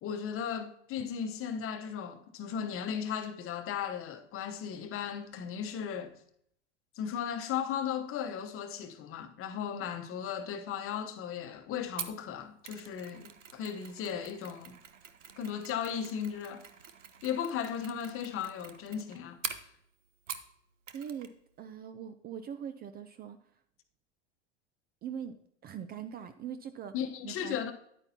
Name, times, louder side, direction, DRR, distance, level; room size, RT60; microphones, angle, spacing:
voice 1, 0.0-6.1 6.9-14.8 15.4-16.7 17.2-19.4 26.9-27.7, left 8 dB, 35° left, 1.0 m, -36 dB
Mechanisms, 12.0-20.6 20.9-21.3 21.6-21.7, right 8 dB, 85° right, 0.8 m, -45 dB
voice 2, 20.9-21.3 21.6-23.5 25.0-27.6, right 8 dB, 25° right, 0.4 m, -42 dB
9.9 x 8.8 x 2.8 m
hypercardioid pair, 90°, 37 cm